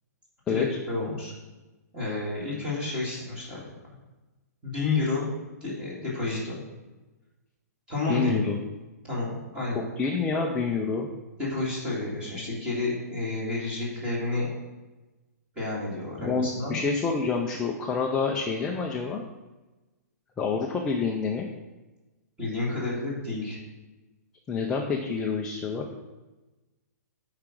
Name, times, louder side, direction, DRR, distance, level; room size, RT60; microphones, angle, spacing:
voice 1, 0.5-1.3 1.9-3.6 4.6-5.3 5.6-6.5 7.9-8.5 9.0-9.8 11.4-14.5 15.6-16.8 22.4-23.6, left 3 dB, 10° right, -7 dB, 2.2 m, -30 dB
voice 2, 8.1-8.6 10.0-11.1 16.2-19.2 20.4-21.5 24.5-25.9, left 4 dB, 5° left, 1 dB, 0.3 m, -27 dB
8.6 x 4.8 x 5.9 m, 1.1 s
hypercardioid pair, 175°, 9 cm